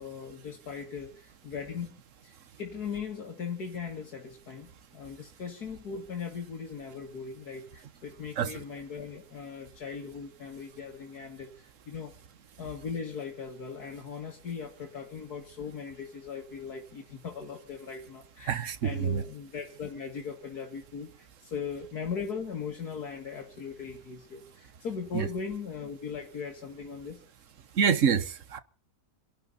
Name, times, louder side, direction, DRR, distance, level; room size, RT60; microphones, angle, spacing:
voice 1, 0.0-12.1 12.6-27.2, left 6 dB, 75° left, 2.5 m, -39 dB
voice 2, 18.5-19.2 25.1-25.3 27.7-28.6, right 7 dB, 55° right, 1.4 m, -27 dB
26.5 x 11.5 x 4.0 m
omnidirectional pair, 1.7 m